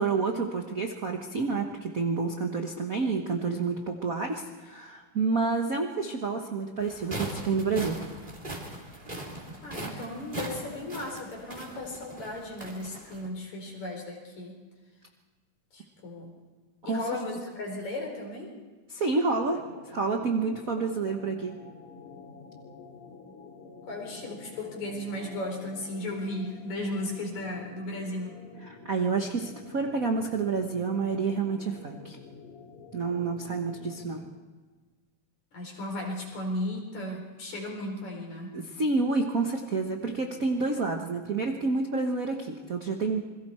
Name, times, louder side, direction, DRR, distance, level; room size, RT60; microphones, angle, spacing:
voice 1, 0.0-8.0 16.8-17.0 18.9-21.6 28.6-32.2 32.9-34.2 38.5-43.3, right 4 dB, 90° right, 3 dB, 0.7 m, -29 dB
sound 1, 6.8-13.3, right 1 dB, 15° right, 2.6 m, -40 dB
voice 2, 9.6-14.6 15.7-16.3 16.8-18.5 23.9-28.4 35.5-38.6, left 1 dB, 65° left, 1 dB, 5.5 m, -35 dB
sound 2, 19.3-34.4, left 4 dB, 90° left, 3.6 m, -49 dB
27.5 x 21.5 x 4.4 m, 1.4 s
omnidirectional pair, 3.5 m